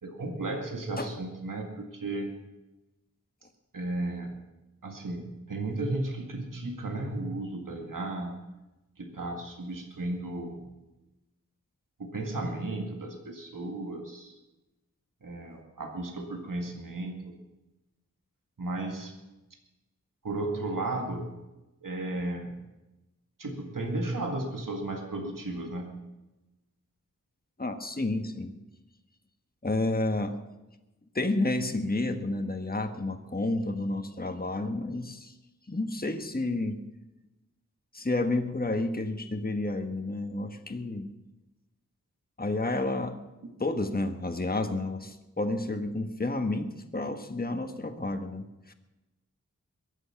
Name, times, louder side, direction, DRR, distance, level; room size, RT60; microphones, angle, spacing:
voice 1, 0.0-2.3 3.7-4.3 4.8-8.4 9.0-10.6 12.0-14.3 15.2-17.4 18.6-19.1 20.2-21.3 21.8-22.6 23.4-25.9, right 2 dB, 85° right, 2 dB, 2.0 m, -34 dB
voice 2, 27.6-28.6 29.6-30.3 31.1-35.3 35.7-36.8 37.9-41.1 42.4-43.2 43.6-48.7, left 2 dB, 30° left, 6 dB, 1.4 m, -30 dB
22.0 x 8.3 x 5.9 m, 1.0 s
wide cardioid pair, 45°, 31 cm